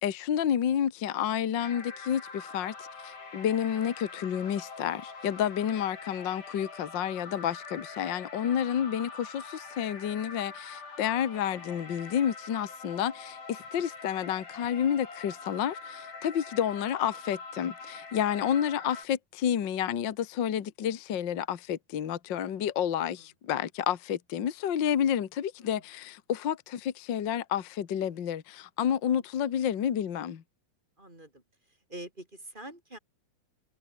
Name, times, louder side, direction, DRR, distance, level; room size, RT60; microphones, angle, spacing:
voice 1, 0.0-30.4, left 9 dB, 55° left, 1.3 m, -30 dB
sound 1, 1.6-19.1, left 4 dB, 70° left, 9.0 m, -44 dB
voice 2, 28.9-29.2 31.0-31.4 31.9-33.0, right 1 dB, 10° right, 6.7 m, -45 dB
omnidirectional pair, 4.3 m